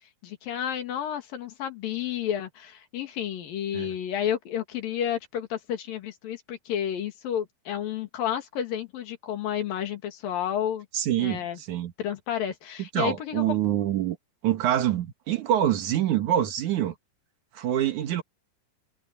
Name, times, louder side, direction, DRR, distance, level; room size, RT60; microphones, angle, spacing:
voice 1, 0.2-10.9 11.2-11.6 12.0-13.6, left 9 dB, 85° left, 3.8 m, -31 dB
voice 2, 10.9-11.9 12.8-14.2 14.4-16.9 17.5-18.2, right 11 dB, 65° right, 2.7 m, -26 dB
omnidirectional pair, 4.0 m